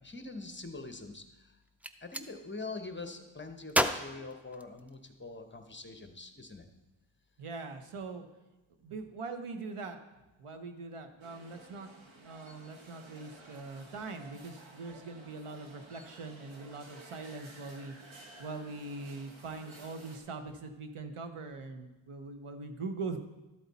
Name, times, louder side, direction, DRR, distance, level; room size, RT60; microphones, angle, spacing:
voice 1, 0.0-1.5 2.0-6.7, left 3 dB, 20° left, 6 dB, 0.9 m, -44 dB
Gunshot gunfire, 1.6-2.3 3.7-5.2, equal, 5° right, 0.4 m, -32 dB
voice 2, 7.4-8.3 8.8-10.0 10.4-11.9 12.2-23.2, right 3 dB, 85° right, 7 dB, 1.1 m, -42 dB
sound 1, 11.2-20.2, right 2 dB, 65° right, 1.5 m, -54 dB
12.5 x 8.1 x 4.1 m, 1.0 s
wide cardioid pair, 115°, 50 cm